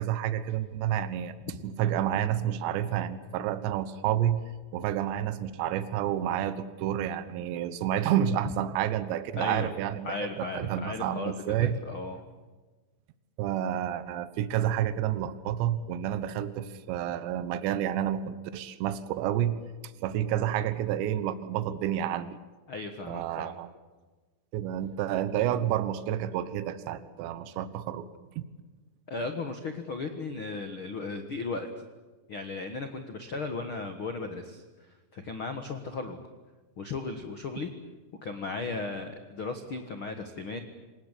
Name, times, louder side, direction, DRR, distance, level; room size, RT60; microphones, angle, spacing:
voice 1, 0.0-1.3 1.6-4.4 4.7-11.8 13.4-19.6 20.0-22.4 23.1-23.7 24.5-28.1 28.4-28.5, right 11 dB, 75° right, 13 dB, 3.4 m, -29 dB
voice 2, 9.4-9.7 10.0-11.3 11.6-12.2 22.7-23.6 29.1-31.8 32.3-34.6 35.1-36.2 36.8-37.7 38.2-40.6, left 3 dB, 75° left, 7 dB, 1.2 m, -36 dB
27.0 x 19.0 x 9.9 m, 1.3 s
omnidirectional pair, 5.3 m